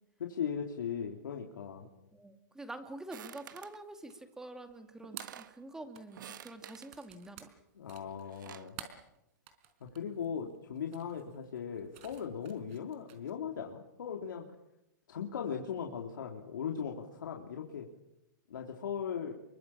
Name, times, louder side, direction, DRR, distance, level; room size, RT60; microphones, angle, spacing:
voice 1, 0.2-1.9 7.8-8.8 9.8-14.5 15.1-17.9 18.5-19.3, left 7 dB, 85° left, 1 dB, 3.5 m, -38 dB
voice 2, 2.1-7.5, right 2 dB, 5° right, 7 dB, 2.3 m, -47 dB
sound 1, 2.9-13.3, right 11 dB, 40° right, 4.4 m, -53 dB
sound 2, 3.1-3.8 4.7-4.8 5.0-5.6 6.1-6.9 8.1-8.7, right 10 dB, 75° right, 1.6 m, -49 dB
29.0 x 23.5 x 7.3 m, 0.87 s
hypercardioid pair, 155°, 11 cm